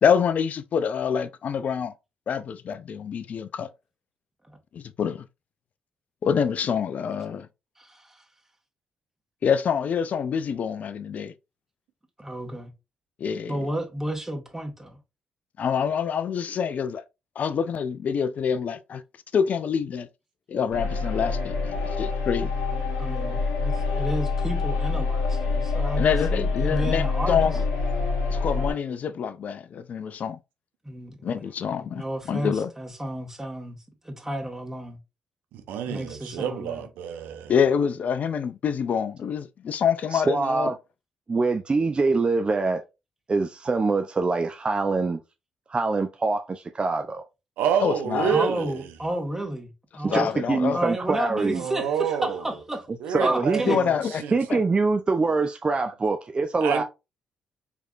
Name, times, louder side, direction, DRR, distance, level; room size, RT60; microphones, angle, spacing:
voice 1, 0.0-1.9 2.3-3.7 4.7-5.3 6.2-7.5 9.4-11.3 13.2-13.7 15.6-17.0 17.4-19.0 19.3-20.1 20.5-22.5 26.0-27.6 28.3-30.4 31.2-32.7 37.5-40.7 47.8-48.4 50.1-50.8 53.7-54.2 54.5-54.6, left 7 dB, 55° left, 0.5 m, -26 dB
voice 2, 7.8-8.2 12.2-12.7 13.5-15.0 22.9-26.0 26.3-27.5 30.8-31.4 31.8-33.8 34.0-35.0 35.9-36.9 48.3-52.9 53.2-53.8, right 1 dB, 10° right, 1.8 m, -32 dB
sound 1, 20.7-28.7, left 4 dB, 80° left, 1.1 m, -26 dB
voice 3, 35.5-37.5 47.6-48.8 51.4-52.4 53.0-54.4 56.6-56.8, right 7 dB, 75° right, 0.8 m, -28 dB
voice 4, 40.1-40.7 41.3-42.8 43.3-45.2 45.7-47.2 50.0-51.6 53.1-53.8 54.3-56.8, right 3 dB, 35° right, 0.6 m, -24 dB
4.8 x 3.5 x 2.5 m
hypercardioid pair, 45°, 3 cm